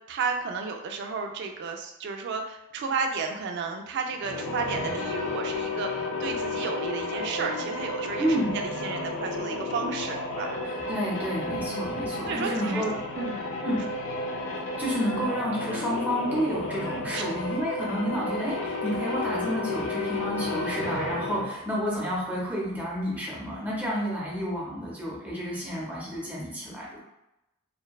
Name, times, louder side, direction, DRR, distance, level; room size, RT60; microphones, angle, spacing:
voice 1, 0.1-10.5 11.5-11.9 12.3-12.8 13.1-14.0 17.1-17.2, right 4 dB, 55° right, 3 dB, 0.3 m, -33 dB
sound 1, 4.1-21.6, left 2 dB, 65° left, 0.4 m, -32 dB
voice 2, 8.2-8.6 10.6-12.9 13.6-13.8 14.7-27.0, equal, 10° right, -5 dB, 0.5 m, -30 dB
2.5 x 2.2 x 2.2 m, 0.91 s
head